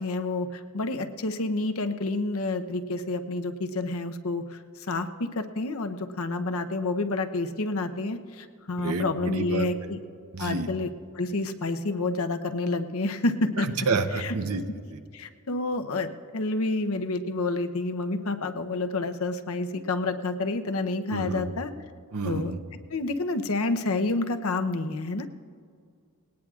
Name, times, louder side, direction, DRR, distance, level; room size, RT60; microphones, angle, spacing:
voice 1, 0.0-5.1 5.3-10.0 10.4-10.9 11.1-13.7 14.2-14.4 15.1-21.7 22.2-22.5 22.9-25.3, left 2 dB, 70° left, 7 dB, 0.7 m, -29 dB
voice 2, 8.8-9.9 10.3-10.7 13.6-14.6 14.9-15.0 21.1-21.5 22.1-22.6, right 4 dB, 80° right, 8 dB, 0.8 m, -29 dB
19.5 x 18.0 x 2.4 m, 2.1 s
head